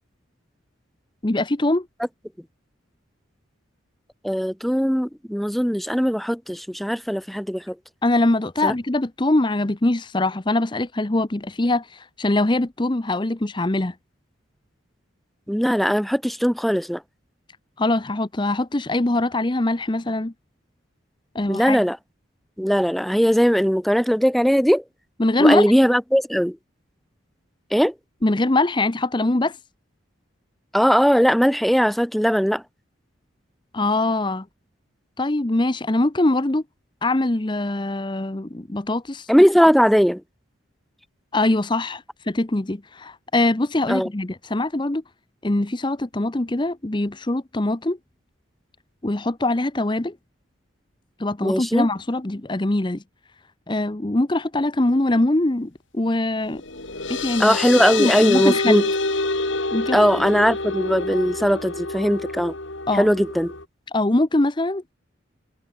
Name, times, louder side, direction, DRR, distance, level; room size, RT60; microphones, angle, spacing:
voice 1, 1.2-1.9 8.0-13.9 17.8-20.3 21.3-21.8 25.2-25.7 28.2-29.6 33.7-34.5 35.2-36.6 37.0-39.3 41.3-45.0 45.4-48.0 49.0-50.2 51.2-53.0 53.7-56.6 57.1-57.6 58.0-58.9 59.7-60.0 62.9-63.1 63.9-64.9, left 2 dB, 25° left, 0.8 m, -22 dB
voice 2, 4.2-7.7 8.6-8.7 15.5-17.0 21.5-22.0 22.6-24.8 25.4-26.6 27.7-27.9 30.7-32.6 39.3-40.2 43.9-44.1 51.4-51.9 57.4-58.9 59.9-62.6 62.9-63.5, equal, ahead, 1.0 m, -19 dB
sound 1, 56.5-63.6, left 3 dB, 75° left, 4.7 m, -27 dB
head